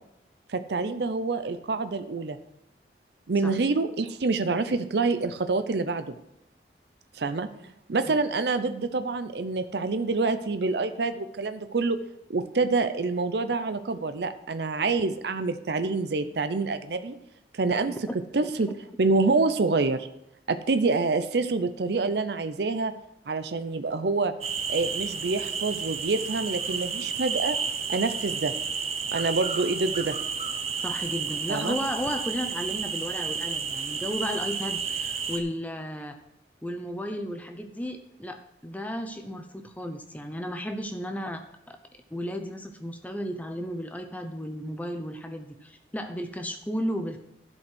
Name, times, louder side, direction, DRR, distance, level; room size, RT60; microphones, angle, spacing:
voice 1, 0.5-2.4 3.3-6.2 7.2-7.5 7.9-12.0 12.3-17.1 17.5-18.0 18.3-18.7 19.0-20.1 20.5-22.9 23.3-24.3 24.7-27.6 27.9-28.5 29.1-30.2 31.5-31.7, right 3 dB, 70° right, 10 dB, 0.6 m, -26 dB
voice 2, 18.1-18.5 30.8-36.2 36.6-41.8 42.1-47.2, equal, 10° left, 6 dB, 0.6 m, -34 dB
sound 1, 24.4-35.4, right 6 dB, 35° right, 0.9 m, -31 dB
11.5 x 5.3 x 6.1 m, 0.80 s
head